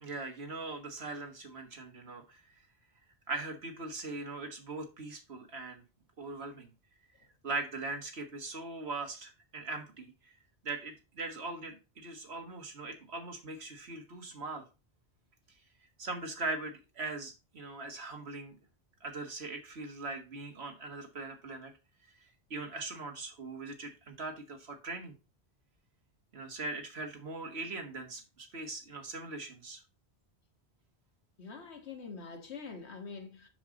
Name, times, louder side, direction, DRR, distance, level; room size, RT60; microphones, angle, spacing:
voice 1, 0.0-2.4 3.3-5.8 6.2-6.7 7.4-10.3 10.6-14.6 16.0-18.6 19.0-21.7 22.5-25.1 26.3-29.8, right 3 dB, 70° right, 1.8 m, -40 dB
voice 2, 31.4-33.5, left 5 dB, 80° left, 1.7 m, -45 dB
7.1 x 6.5 x 3.8 m
omnidirectional pair, 1.1 m